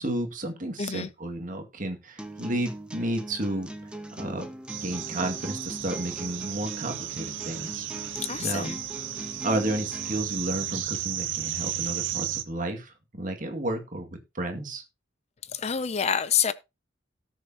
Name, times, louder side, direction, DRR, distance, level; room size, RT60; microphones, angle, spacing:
voice 1, 0.0-3.7 4.1-4.5 4.8-7.9 8.4-8.7 9.4-14.8, right 1 dB, 45° right, 2.2 m, -32 dB
voice 2, 0.8-1.1 8.2-8.8 15.5-16.5, left 7 dB, 35° left, 0.5 m, -27 dB
sound 1, 2.2-10.2, right 1 dB, 5° right, 1.2 m, -41 dB
sound 2, 4.7-12.4, right 11 dB, 90° right, 1.0 m, -34 dB
18.0 x 6.6 x 2.9 m
head